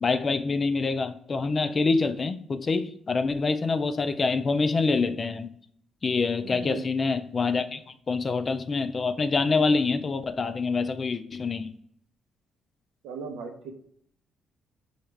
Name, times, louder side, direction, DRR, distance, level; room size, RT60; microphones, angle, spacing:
voice 1, 0.0-5.5 6.0-7.8 8.1-11.7, left 4 dB, 35° left, 0.3 m, -26 dB
voice 2, 6.4-6.9 13.0-13.7, right 4 dB, 85° right, 0.7 m, -37 dB
5.6 x 2.4 x 3.2 m
cardioid pair, 90°, 0 cm